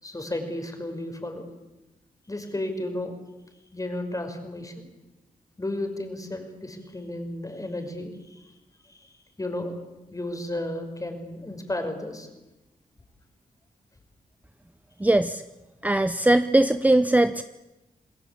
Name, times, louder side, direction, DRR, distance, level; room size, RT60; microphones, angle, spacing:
voice 1, 0.0-1.5 2.3-3.1 3.7-4.9 5.6-8.5 8.9-9.1 9.4-9.8 10.1-12.3, left 1 dB, 20° left, 6 dB, 5.6 m, -33 dB
voice 2, 15.0-15.4 15.8-17.4, right 1 dB, 10° right, 11 dB, 0.8 m, -20 dB
28.0 x 19.5 x 8.7 m, 1.0 s
cardioid pair, 80°, 15 cm